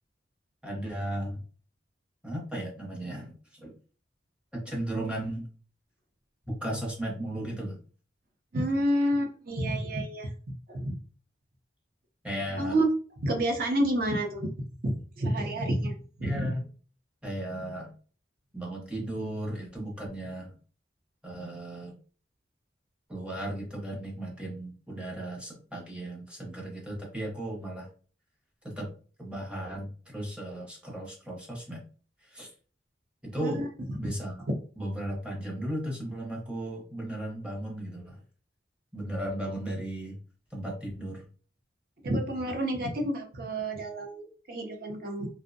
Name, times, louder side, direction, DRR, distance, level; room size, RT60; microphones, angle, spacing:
voice 1, 0.6-1.4 2.2-3.7 4.5-5.5 6.5-7.8 12.2-12.8 16.2-16.6 17.2-17.9 18.5-20.5 21.2-21.9 23.1-27.9 28.6-28.9 29.2-31.8 32.3-32.5 33.2-33.6 34.0-34.4 34.8-38.2 38.9-40.2 40.5-41.2, right 1 dB, 5° right, -2 dB, 0.6 m, -35 dB
voice 2, 8.5-10.3 10.7-11.0 12.6-12.9 13.2-14.5 14.8-15.9 16.2-16.3 33.4-33.7 42.0-45.3, right 1 dB, 50° right, 3 dB, 0.5 m, -29 dB
2.5 x 2.0 x 2.5 m, 0.41 s
head